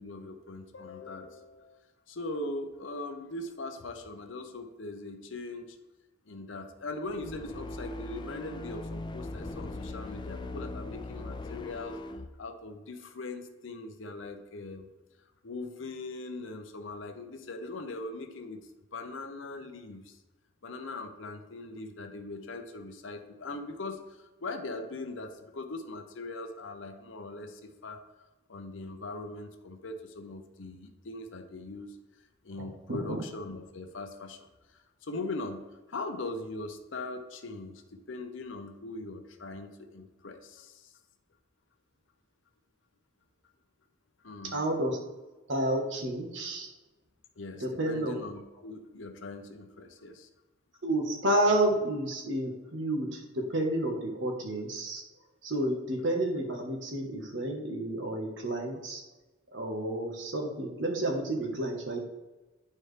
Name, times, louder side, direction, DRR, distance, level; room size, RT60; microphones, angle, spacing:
voice 1, 0.0-1.8 2.1-5.8 6.3-12.0 12.4-14.9 15.4-18.6 18.9-20.2 20.6-28.0 28.5-32.0 32.4-34.5 34.7-40.9 44.2-44.6 47.4-50.3, left 2 dB, 75° left, 6 dB, 0.8 m, -40 dB
sound 1, 7.1-12.3, left 2 dB, 25° left, 0.3 m, -40 dB
voice 2, 32.5-33.2 44.4-45.0 45.5-46.7 47.6-48.1 50.8-55.0 55.4-59.0 59.5-62.0, right 1 dB, 65° right, 2 dB, 1.2 m, -30 dB
10.5 x 4.4 x 3.3 m, 1.1 s
head